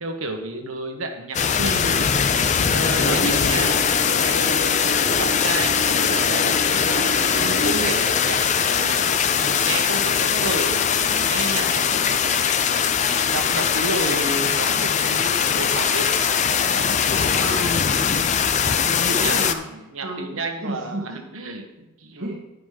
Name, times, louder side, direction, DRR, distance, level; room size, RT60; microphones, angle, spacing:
voice 1, 0.0-2.1 2.6-3.8 4.1-6.8 7.3-9.1 9.4-12.5 13.3-16.1 16.6-16.9 19.2-19.4 19.7-22.3, right 2 dB, 80° right, 3 dB, 1.3 m, -31 dB
sound 1, 1.3-19.5, left 7 dB, 35° left, 0.4 m, -21 dB
sound 2, 2.9-7.9, right 1 dB, 50° left, 1.2 m, -29 dB
voice 2, 17.3-18.3 18.8-19.6 20.0-21.0 22.2-22.4, equal, 55° right, -5 dB, 1.4 m, -31 dB
11.0 x 5.2 x 5.0 m, 0.98 s
head